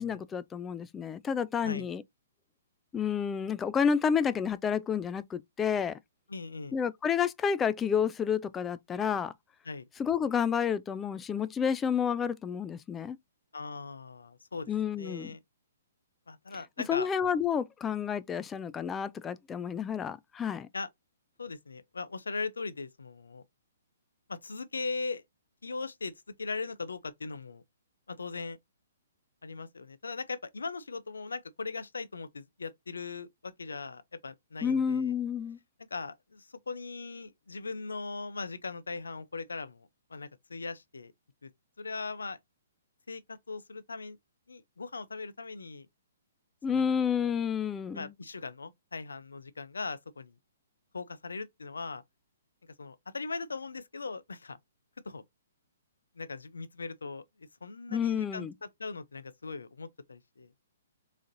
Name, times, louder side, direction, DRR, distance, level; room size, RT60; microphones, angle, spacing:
voice 1, 0.0-2.0 2.9-6.0 6.7-9.3 10.0-13.2 14.7-15.3 16.9-20.7 34.6-35.6 46.6-48.1 57.9-58.5, left 7 dB, 15° left, 0.3 m, -30 dB
voice 2, 6.3-6.8 9.6-9.9 13.5-15.4 16.3-17.1 20.7-20.9 21.4-23.4 24.3-25.2 25.6-26.1 26.4-27.6 28.1-28.6 29.4-35.1 35.9-41.1 41.4-41.5 41.8-42.4 43.1-44.2 44.5-45.9 46.7-47.0 47.9-50.4 50.9-52.0 52.8-54.6 55.0-55.2 56.2-60.5, left 4 dB, 80° left, 0.5 m, -39 dB
3.7 x 3.1 x 2.6 m
figure-of-eight pair, 130°, 0 cm